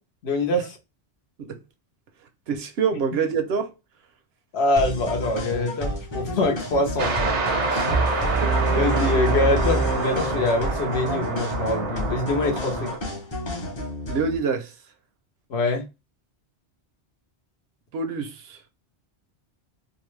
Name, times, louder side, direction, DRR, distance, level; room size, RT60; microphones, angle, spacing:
voice 1, 0.2-0.8 4.5-8.0 8.8-12.9 15.5-15.8, left 2 dB, 70° left, 1.0 m, -25 dB
voice 2, 2.5-3.7 8.4-8.8 14.1-14.7 17.9-18.6, right 5 dB, 70° right, 0.8 m, -26 dB
sound 1, 4.8-14.4, left 2 dB, 30° left, 0.6 m, -31 dB
sound 2, 7.0-13.0, right 4 dB, 85° right, 1.1 m, -28 dB
sound 3, 7.9-10.9, right 3 dB, 40° right, 0.4 m, -25 dB
2.7 x 2.0 x 3.0 m
omnidirectional pair, 1.1 m